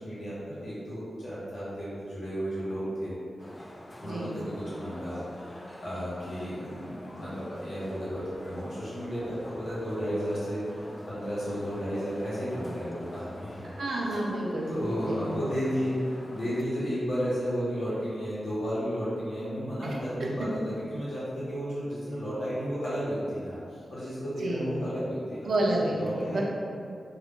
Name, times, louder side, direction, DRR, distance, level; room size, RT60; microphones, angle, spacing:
voice 1, 0.0-3.1 4.0-14.0 14.7-25.4 25.8-26.4, equal, 85° left, -11 dB, 1.4 m, -33 dB
sound 1, 3.4-16.6, left 1 dB, 20° left, 0.3 m, -46 dB
voice 2, 4.0-4.4 13.6-15.3 24.4-24.7 25.4-26.4, right 1 dB, 75° right, -2 dB, 0.5 m, -30 dB
2.8 x 2.4 x 3.6 m, 2.3 s
wide cardioid pair, 90°, 0 cm